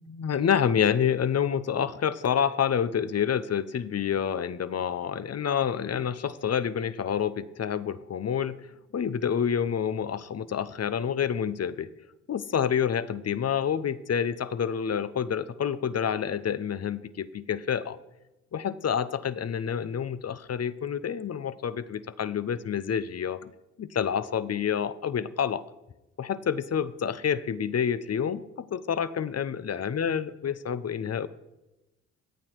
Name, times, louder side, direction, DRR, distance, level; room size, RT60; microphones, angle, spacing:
voice 1, 0.1-11.9 12.3-18.0 18.5-23.5 23.8-25.7 26.2-31.3, left 8 dB, 45° left, 15 dB, 1.0 m, -28 dB
23.5 x 8.8 x 4.8 m, 0.99 s
hypercardioid pair, 50°, 36 cm